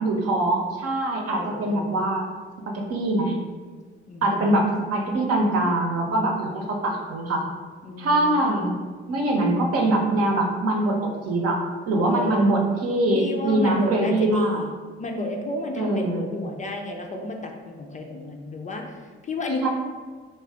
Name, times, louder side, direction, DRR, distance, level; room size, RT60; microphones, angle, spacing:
voice 1, 0.0-2.2 2.7-3.4 4.2-7.4 8.0-8.8 9.1-11.0 11.3-14.6 15.8-16.3 19.6-19.7, right 1 dB, 55° right, 1 dB, 0.8 m, -23 dB
voice 2, 1.3-2.0 4.1-4.7 7.8-8.6 12.0-12.7 13.1-19.7, left 2 dB, 25° left, 2 dB, 0.5 m, -32 dB
3.2 x 2.8 x 3.4 m, 1.5 s
figure-of-eight pair, 45°, 30 cm